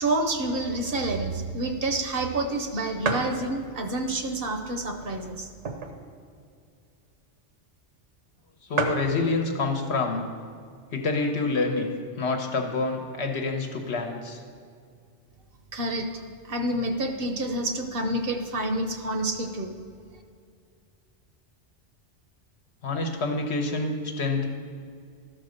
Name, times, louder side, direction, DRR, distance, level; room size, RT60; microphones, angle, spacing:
voice 1, 0.0-5.5 15.7-19.7, right 2 dB, 55° right, 5 dB, 0.9 m, -28 dB
sound 1, 3.0-3.4 4.0-4.1 4.9-6.1 6.5-6.6 6.7-7.0 7.8-7.9 8.1-8.2 8.4-8.5 8.7-9.1 10.0-10.4 10.9-11.0 11.2-12.0, right 4 dB, 80° right, 1.2 m, -30 dB
voice 2, 8.7-10.2 10.9-11.9 12.2-14.4 22.8-24.5, left 3 dB, 65° left, 3 dB, 1.2 m, -27 dB
13.0 x 4.3 x 6.5 m, 2.3 s
omnidirectional pair, 1.2 m